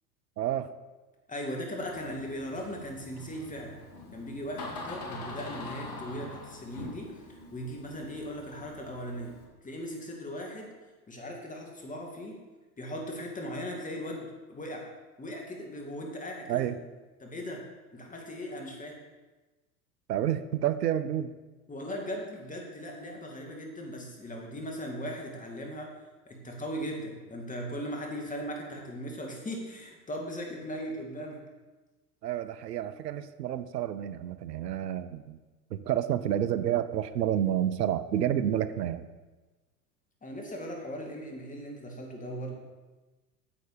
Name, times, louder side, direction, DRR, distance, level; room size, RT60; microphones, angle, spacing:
voice 1, 0.4-0.7 16.5-16.8 20.1-21.3 32.2-35.4 35.7-39.1, right 11 dB, 85° right, 14 dB, 0.7 m, -29 dB
voice 2, 1.3-3.8 4.1-9.4 9.6-10.7 11.1-12.4 12.8-14.9 15.2-16.7 17.2-17.7 17.9-19.0 21.7-26.0 26.3-31.4 40.2-42.5, equal, 15° left, 0 dB, 2.4 m, -38 dB
Door, 1.8-9.5, left 3 dB, 60° left, 2.5 m, -44 dB
9.2 x 7.9 x 5.0 m, 1.2 s
hypercardioid pair, 90°, 47 cm